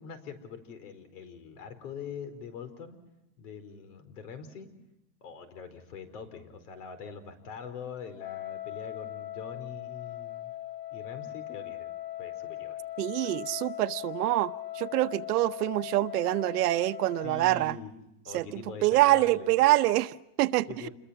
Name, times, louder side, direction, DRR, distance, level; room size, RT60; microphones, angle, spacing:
voice 1, 0.0-3.0 3.4-4.7 5.2-10.5 10.9-11.9 12.2-12.8 17.2-17.9 18.2-19.5 20.7-20.9, left 6 dB, 75° left, 10 dB, 4.8 m, -43 dB
Wind instrument woodwind instrument, 8.2-17.5, left 13 dB, 55° left, 4.5 m, -39 dB
voice 2, 13.0-17.8 18.3-20.9, right 16 dB, 75° right, 12 dB, 1.0 m, -26 dB
29.0 x 22.0 x 5.9 m, 0.88 s
supercardioid pair, 175°, 46 cm